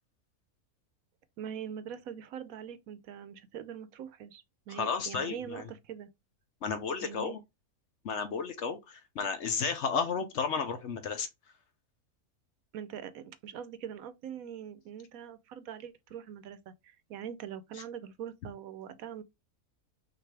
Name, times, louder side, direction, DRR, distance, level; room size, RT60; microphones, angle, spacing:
voice 1, 1.4-6.1 7.0-7.4 12.7-19.2, right 9 dB, 75° right, 1.0 m, -43 dB
voice 2, 4.7-5.6 6.6-7.4 8.0-11.3, left 5 dB, 60° left, 0.9 m, -33 dB
6.0 x 2.6 x 3.2 m
omnidirectional pair, 1.6 m